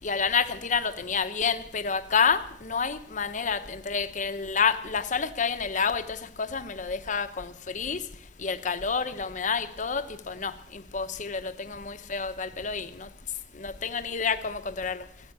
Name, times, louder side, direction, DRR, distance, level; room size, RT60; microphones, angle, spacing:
voice 1, 0.0-8.0 8.4-13.1 13.6-15.0, left 5 dB, 45° left, 0.9 m, -29 dB
14.5 x 9.1 x 9.1 m
head